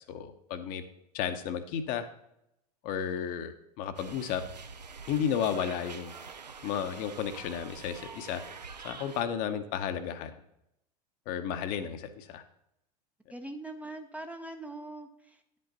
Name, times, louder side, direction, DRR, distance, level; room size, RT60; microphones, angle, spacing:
voice 1, 0.1-0.8 1.1-2.1 2.8-4.4 5.1-6.2 6.6-8.4 8.8-10.3 11.3-12.4, left 8 dB, 45° left, 9 dB, 0.8 m, -33 dB
sound 1, 4.0-9.2, right 5 dB, 85° right, 0.5 m, -46 dB
voice 2, 13.3-15.6, right 2 dB, 5° right, 5 dB, 0.5 m, -42 dB
10.5 x 5.4 x 4.0 m, 0.81 s
figure-of-eight pair, 85°, 21 cm